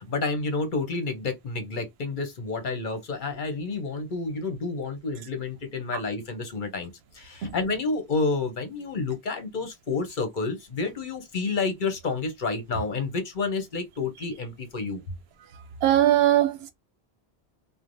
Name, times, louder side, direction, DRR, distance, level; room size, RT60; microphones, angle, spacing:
voice 1, 0.0-15.0, left 4 dB, 55° left, 0.8 m, -30 dB
voice 2, 15.8-16.7, right 12 dB, 75° right, 0.8 m, -20 dB
3.1 x 2.1 x 2.5 m
omnidirectional pair, 1.1 m